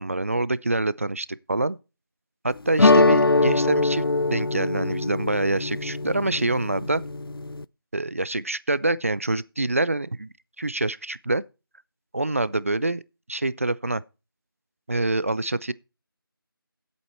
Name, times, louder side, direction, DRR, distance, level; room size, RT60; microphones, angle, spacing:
voice 1, 0.0-1.8 2.4-7.0 7.9-10.3 10.6-11.4 12.1-13.0 13.3-14.0 14.9-15.7, right 2 dB, 35° right, 0.4 m, -26 dB
sound 1, 2.8-7.6, left 3 dB, 75° left, 0.5 m, -22 dB
11.0 x 8.3 x 4.4 m
figure-of-eight pair, 165°, 12 cm